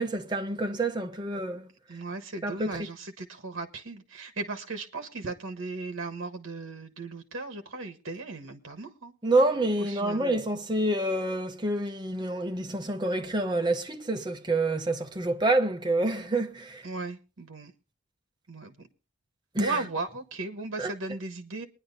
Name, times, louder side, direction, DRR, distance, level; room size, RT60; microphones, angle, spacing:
voice 1, 0.0-1.7 2.4-2.9 9.2-16.8 19.5-19.8 20.8-20.9, right 2 dB, 20° right, 0.8 m, -27 dB
voice 2, 1.9-9.1 9.9-10.2 16.8-17.7 18.5-18.7 19.6-21.7, right 3 dB, 65° right, 1.3 m, -36 dB
23.0 x 10.0 x 2.7 m
head